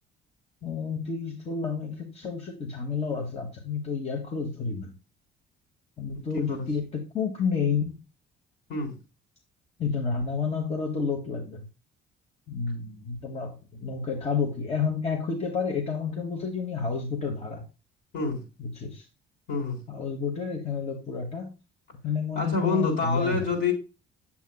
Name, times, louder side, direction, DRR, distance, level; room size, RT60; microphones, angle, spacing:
voice 1, 0.6-4.9 6.0-8.0 9.8-11.7 12.5-17.6 18.6-19.0 19.9-21.5 22.0-23.4, left 5 dB, 30° left, 2 dB, 1.2 m, -30 dB
voice 2, 6.3-6.7 8.7-9.0 18.1-18.4 19.5-19.8 22.4-23.7, left 4 dB, 65° left, 0 dB, 3.9 m, -27 dB
8.2 x 7.2 x 2.3 m, 0.30 s
cardioid pair, 135°, 21 cm